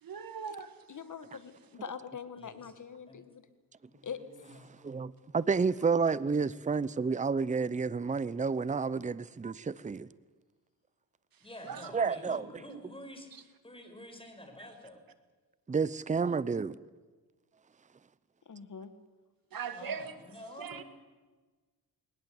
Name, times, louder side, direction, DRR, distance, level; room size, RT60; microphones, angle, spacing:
voice 1, 0.0-0.9 11.3-12.1 14.6-14.7 19.5-20.1 20.6-20.8, right 7 dB, 60° right, 1.9 m, -41 dB
voice 2, 0.9-3.4 4.0-4.2 18.5-18.9, left 7 dB, 50° left, 1.9 m, -43 dB
voice 3, 2.4-2.7 3.1-3.2 3.9-5.1 11.4-13.3 13.6-15.0 19.7-20.8, left 1 dB, 15° left, 5.5 m, -49 dB
voice 4, 4.8-10.1 11.9-12.4 15.7-16.8, right 5 dB, 20° right, 0.7 m, -30 dB
21.0 x 19.5 x 8.0 m
cardioid pair, 80°, 39 cm